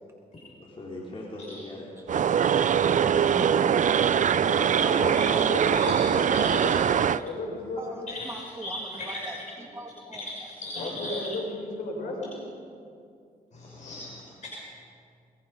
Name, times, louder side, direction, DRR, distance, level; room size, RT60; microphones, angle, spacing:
voice 1, 0.6-3.2 4.6-6.9, left 1 dB, 35° left, -5 dB, 4.8 m, -41 dB
sound 1, 2.1-7.2, right 8 dB, 55° right, 0.6 m, -22 dB
voice 2, 3.2-5.1 7.8-10.2 10.8-10.9, right 2 dB, 15° right, -1 dB, 2.5 m, -41 dB
voice 3, 4.4-6.8 7.2-8.1 10.8-12.3, left 2 dB, 90° left, -1 dB, 6.8 m, -34 dB
voice 4, 5.5-6.0 6.3-6.7 8.1-8.3 8.6-9.1 10.2-11.1 13.5-14.2, left 1 dB, 50° left, -4 dB, 5.8 m, -38 dB
22.5 x 22.0 x 5.6 m, 2.3 s
cardioid pair, 80°, 16 cm